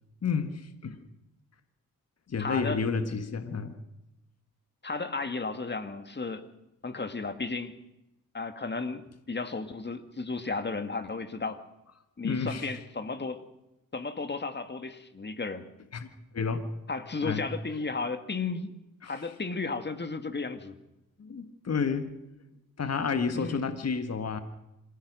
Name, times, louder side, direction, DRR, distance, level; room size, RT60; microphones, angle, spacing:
voice 1, 0.2-1.0 2.3-3.8 12.2-12.7 15.9-16.6 17.2-17.5 19.0-19.1 21.2-22.1 22.8-24.4, left 5 dB, 45° left, 9 dB, 1.8 m, -30 dB
voice 2, 2.4-2.8 4.8-6.5 6.8-7.8 8.3-11.6 12.2-13.4 13.9-15.7 16.9-18.8 19.0-20.8 23.3-23.6, left 4 dB, 30° left, 9 dB, 2.1 m, -34 dB
26.5 x 16.0 x 6.4 m, 0.92 s
cardioid pair, 70°, 35 cm